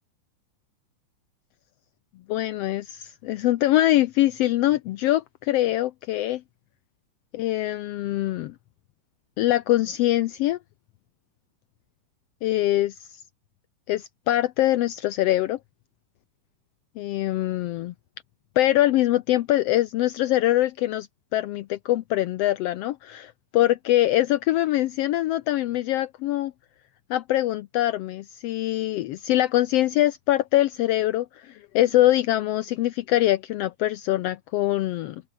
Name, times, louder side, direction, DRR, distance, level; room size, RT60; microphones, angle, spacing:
voice 1, 2.3-6.4 7.3-8.5 9.4-10.6 12.4-12.9 13.9-15.6 17.0-17.9 18.6-21.1 21.3-26.5 27.1-35.2, left 14 dB, 85° left, 1.3 m, -23 dB
omnidirectional pair, 3.6 m